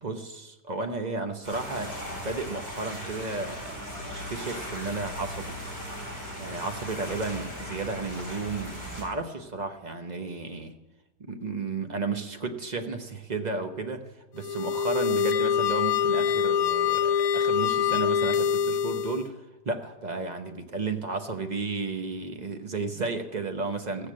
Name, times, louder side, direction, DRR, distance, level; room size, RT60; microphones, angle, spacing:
voice 1, 0.0-3.8 4.0-5.6 6.4-10.7 11.2-19.4 19.6-24.1, right 3 dB, 35° right, 6 dB, 0.7 m, -33 dB
sound 1, 1.4-9.0, equal, 90° right, 5.8 m, -38 dB
sound 2, 14.4-19.3, left 8 dB, 65° left, 1.0 m, -25 dB
17.0 x 6.8 x 7.5 m, 1.1 s
omnidirectional pair, 1.8 m